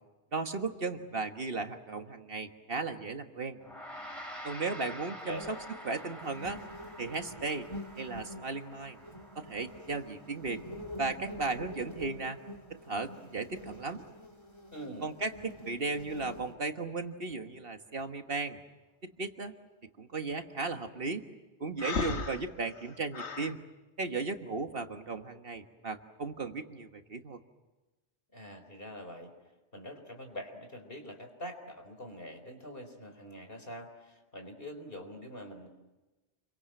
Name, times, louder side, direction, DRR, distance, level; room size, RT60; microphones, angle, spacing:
voice 1, 0.3-3.6 4.4-5.6 5.9-6.6 7.0-7.7 8.0-9.0 9.4-10.6 11.0-12.4 12.7-14.0 15.0-18.6 19.0-19.5 20.0-21.2 21.6-23.6 24.0-27.4, right 3 dB, 55° right, 7 dB, 1.6 m, -36 dB
Gong, 3.6-13.1, equal, ahead, 5.3 m, -48 dB
sound 1, 5.3-16.5, left 1 dB, 25° left, 2.8 m, -47 dB
voice 2, 14.7-15.1 28.3-29.3 29.7-35.7, equal, 55° left, 6 dB, 4.2 m, -44 dB
Breathing, 21.8-23.5, left 5 dB, 80° left, 1.8 m, -35 dB
29.5 x 23.5 x 7.7 m, 1.1 s
omnidirectional pair, 1.1 m